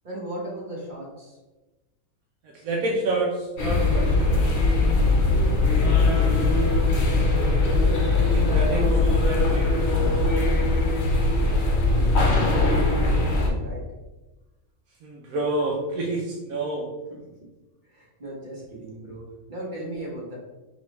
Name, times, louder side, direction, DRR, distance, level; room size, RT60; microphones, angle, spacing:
voice 1, 0.0-1.4 5.9-6.6 11.4-11.6 11.8-12.1 12.4-13.9 17.1-17.3 17.8-20.4, right 1 dB, 40° right, -3 dB, 1.0 m, -36 dB
voice 2, 2.6-4.5 8.1-10.2 15.0-16.9, right 2 dB, 85° right, -2 dB, 1.1 m, -29 dB
sound 1, 3.6-13.5, left 3 dB, 55° left, 0.9 m, -21 dB
sound 2, 6.4-13.7, right 4 dB, 25° left, 0.6 m, -37 dB
4.6 x 3.1 x 3.0 m, 1.1 s
omnidirectional pair, 1.5 m